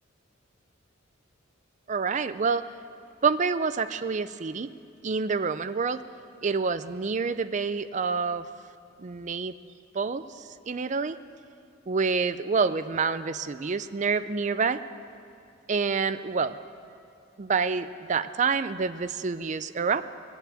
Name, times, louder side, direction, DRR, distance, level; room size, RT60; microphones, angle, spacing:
voice 1, 1.9-2.6 3.2-4.7 5.0-6.0 6.4-8.4 9.0-9.5 9.9-10.2 10.7-11.2 11.9-14.8 15.7-16.6 17.4-20.0, right 5 dB, 40° right, 12 dB, 0.5 m, -27 dB
21.0 x 7.2 x 9.1 m, 2.4 s
head